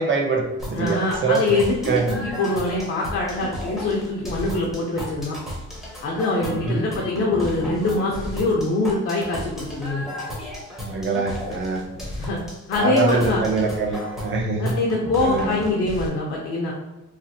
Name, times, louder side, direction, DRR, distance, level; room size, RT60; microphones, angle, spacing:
voice 1, 0.0-1.6 1.9-2.4 6.5-6.9 10.8-11.8 12.8-14.8 15.2-15.6, right 3 dB, 40° right, 1 dB, 0.6 m, -24 dB
sound 1, 0.6-16.1, left 1 dB, ahead, 0.6 m, -34 dB
voice 2, 0.8-5.4 6.0-10.0 12.2-12.4 12.7-13.4 14.6-16.7, left 2 dB, 50° left, -3 dB, 0.5 m, -24 dB
3.2 x 2.4 x 2.7 m, 0.99 s
cardioid pair, 145°, 30 cm